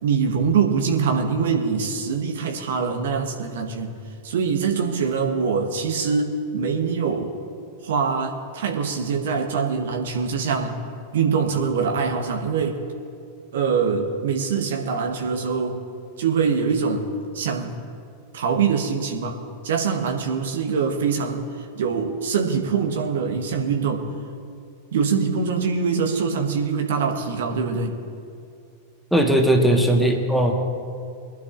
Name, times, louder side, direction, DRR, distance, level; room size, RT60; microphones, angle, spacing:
voice 1, 0.0-4.0 4.2-7.4 7.8-10.8 11.1-12.8 13.5-15.8 16.2-17.1 17.3-17.8 18.3-19.4 19.6-24.1 24.9-28.0, right 5 dB, 60° right, 4 dB, 1.2 m, -23 dB
voice 2, 29.1-30.6, right 1 dB, ahead, 2 dB, 1.5 m, -18 dB
22.5 x 11.5 x 2.6 m, 2.4 s
figure-of-eight pair, 90°, 0 cm